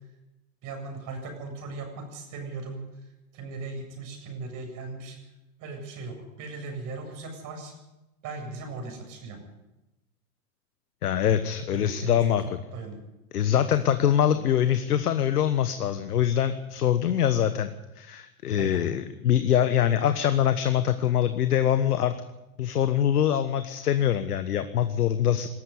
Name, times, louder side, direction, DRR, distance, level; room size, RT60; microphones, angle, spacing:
voice 1, 0.6-2.8 3.3-5.2 5.6-7.7 8.2-9.4 11.7-13.0 18.6-18.8, right 3 dB, 45° right, 4 dB, 7.9 m, -38 dB
voice 2, 11.0-12.6 13.3-17.7 18.0-22.1 22.6-25.5, left 10 dB, 80° left, 10 dB, 1.3 m, -24 dB
19.5 x 13.5 x 9.7 m, 0.99 s
hypercardioid pair, 95°, 45 cm